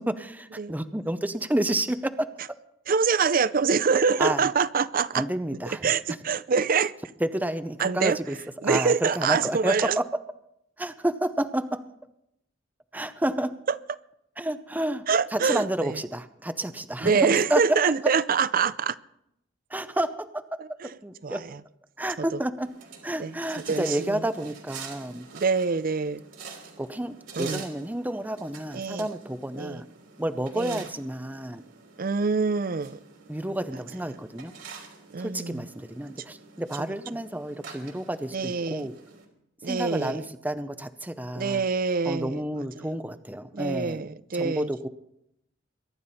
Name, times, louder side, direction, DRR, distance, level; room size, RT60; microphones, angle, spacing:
voice 1, 0.1-2.3 4.2-4.5 5.2-5.8 7.2-8.4 8.6-10.0 10.8-11.8 12.9-13.5 14.4-15.0 15.3-17.1 17.5-17.6 19.7-21.5 22.0-22.7 23.0-25.3 26.8-29.9 30.2-31.6 33.3-34.5 35.2-39.0 39.6-41.6 42.1-44.0 44.3-44.9, right 1 dB, 10° right, 11 dB, 0.6 m, -30 dB
voice 2, 2.9-5.2 5.8-6.9 7.8-8.2 8.6-10.0 13.7-13.8 15.1-16.0 17.0-19.0 20.8-20.9 21.2-21.6 22.2-22.4 23.2-23.4 23.7-24.2 25.3-26.2 27.4-27.6 28.7-29.1 29.5-29.8 30.5-30.9 32.0-33.0 35.1-35.7 38.3-38.9 39.6-40.2 41.3-42.4 42.8-42.9 43.5-44.7, right 5 dB, 45° right, 17 dB, 0.5 m, -25 dB
sound 1, 22.6-39.2, right 6 dB, 75° right, 3.1 m, -47 dB
22.5 x 11.5 x 4.2 m, 0.79 s
head